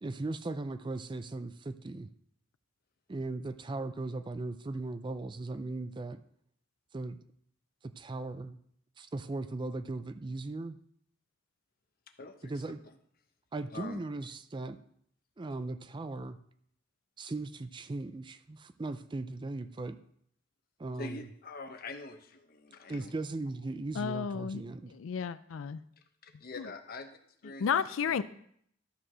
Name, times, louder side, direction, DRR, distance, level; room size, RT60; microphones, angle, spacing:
voice 1, 0.0-2.1 3.1-6.2 6.9-7.2 7.8-8.6 9.0-10.8 12.4-12.8 13.5-14.8 15.4-16.4 17.2-20.0 20.8-21.3 22.9-24.9, right 2 dB, 25° right, 12 dB, 0.4 m, -38 dB
voice 2, 12.2-12.5 13.7-14.0 21.0-23.1 26.2-27.1 27.4-27.6 28.1-28.2, left 3 dB, 50° left, 7 dB, 1.0 m, -44 dB
voice 3, 24.0-24.6 24.9-25.8 26.6-26.7 27.6-28.2, left 7 dB, 85° left, 14 dB, 0.4 m, -32 dB
12.5 x 4.7 x 6.2 m, 0.67 s
head